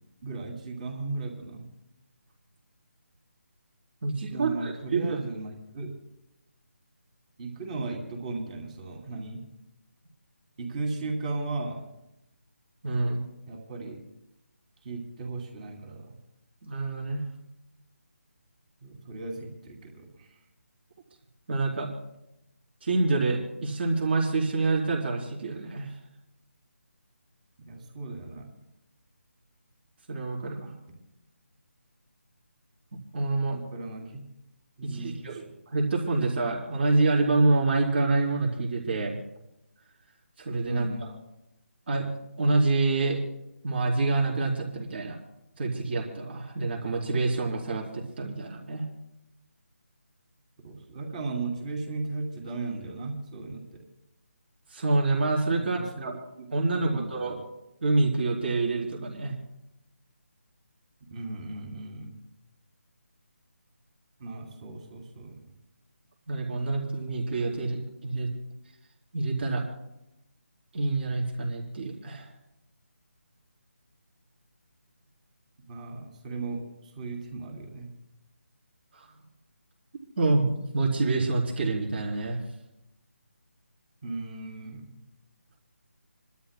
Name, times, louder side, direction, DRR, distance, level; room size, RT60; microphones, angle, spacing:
voice 1, 0.2-1.7 4.1-5.9 7.4-9.4 10.6-11.8 13.5-14.0 14.8-16.2 18.8-20.4 27.7-28.5 33.5-34.2 34.8-35.5 40.6-41.1 50.6-53.8 55.6-56.1 56.7-57.4 61.1-62.1 64.2-65.4 75.7-77.9 84.0-84.9, right 3 dB, 30° right, 1 dB, 2.8 m, -36 dB
voice 2, 4.0-5.2 12.8-13.2 16.6-17.2 21.5-21.9 22.8-25.9 30.1-30.7 33.1-33.6 34.8-39.2 40.4-41.2 41.9-42.1 42.4-43.2 43.6-45.2 45.6-48.9 54.7-56.1 56.5-57.4 57.8-59.3 66.3-68.3 69.1-69.6 70.7-72.3 78.9-79.1 80.2-82.4, right 3 dB, 50° right, -3 dB, 3.7 m, -27 dB
29.5 x 12.5 x 2.2 m, 0.89 s
figure-of-eight pair, 160°, 8 cm